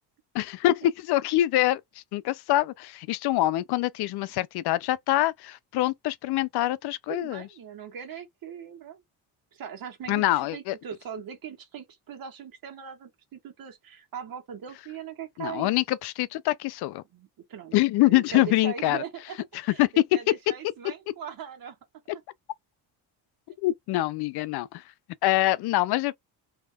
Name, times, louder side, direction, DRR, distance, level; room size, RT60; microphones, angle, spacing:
voice 1, 0.3-1.8 2.1-7.5 10.1-10.8 15.4-17.0 17.7-19.0 19.8-19.9 23.6-24.8 25.2-26.2, left 16 dB, 70° left, 0.5 m, -25 dB
voice 2, 7.1-9.0 9.5-15.7 17.1-19.4 19.7-21.8, right 8 dB, 55° right, 1.5 m, -40 dB
3.5 x 3.1 x 2.2 m
cardioid pair, 140°, 41 cm